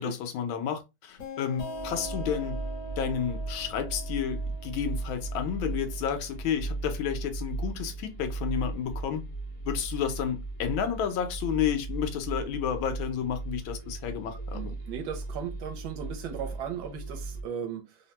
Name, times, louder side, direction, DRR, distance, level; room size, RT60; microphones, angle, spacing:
voice 1, 0.0-2.6 3.0-9.2 9.6-14.7, left 8 dB, 90° left, 1.5 m, -31 dB
sound 1, 1.2-6.6, left 1 dB, 70° left, 1.6 m, -43 dB
sound 2, 1.7-17.4, right 3 dB, 25° left, 0.7 m, -37 dB
voice 2, 14.3-18.0, right 7 dB, 80° right, 1.4 m, -37 dB
3.5 x 2.1 x 2.8 m
omnidirectional pair, 2.1 m